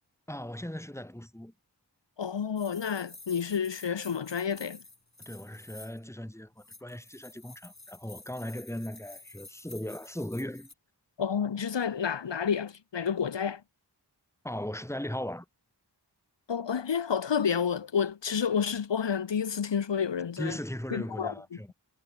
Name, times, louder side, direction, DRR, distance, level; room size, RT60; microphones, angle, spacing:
voice 1, 0.3-1.5 5.2-10.7 14.4-15.5 20.4-21.7, left 1 dB, 5° left, 1.9 m, -38 dB
voice 2, 2.2-4.8 11.2-13.6 16.5-20.6 20.9-21.3, left 7 dB, 85° left, 0.8 m, -30 dB
sound 1, 2.6-6.0 6.6-10.7, left 2 dB, 40° left, 3.1 m, -51 dB
wide cardioid pair, 45°, 42 cm